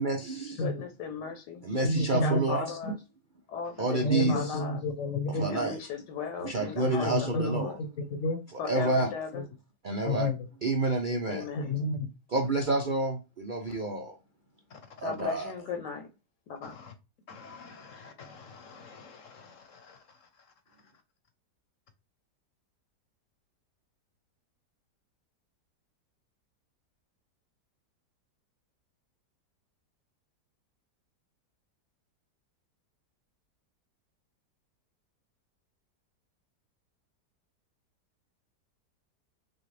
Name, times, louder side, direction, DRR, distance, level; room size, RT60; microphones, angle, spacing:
voice 1, 0.0-0.6 1.6-2.8 3.8-4.6 5.3-5.8 6.4-7.7 8.7-9.1 9.8-10.3 10.6-11.5 12.3-14.2 15.0-15.5, right 2 dB, 90° right, 0.4 m, -29 dB
voice 2, 0.6-1.6 2.2-2.9 3.5-4.8 5.5-7.8 8.6-9.4 11.2-11.7 15.0-16.1 16.5-16.7, left 6 dB, 85° left, 1.5 m, -37 dB
voice 3, 1.8-2.4 2.8-2.9 4.0-5.5 6.8-8.4 9.3-9.4 10.0-10.5 11.5-12.1 13.7-13.8 14.7-14.8 16.6-16.9 17.3-20.2, left 1 dB, 55° left, 1.1 m, -32 dB
6.2 x 2.4 x 3.2 m
omnidirectional pair, 1.8 m